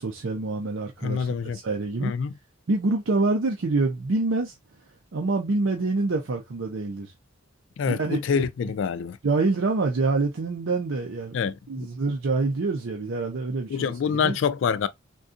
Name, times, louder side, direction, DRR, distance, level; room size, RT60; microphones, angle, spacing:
voice 1, 0.0-2.1 2.7-4.5 5.1-7.1 7.8-8.4 9.2-14.4, right 3 dB, 75° right, 0.5 m, -26 dB
voice 2, 1.0-1.6 2.0-2.3 7.8-9.2 11.3-11.9 13.7-14.9, left 6 dB, 70° left, 0.3 m, -26 dB
3.7 x 2.3 x 2.4 m
head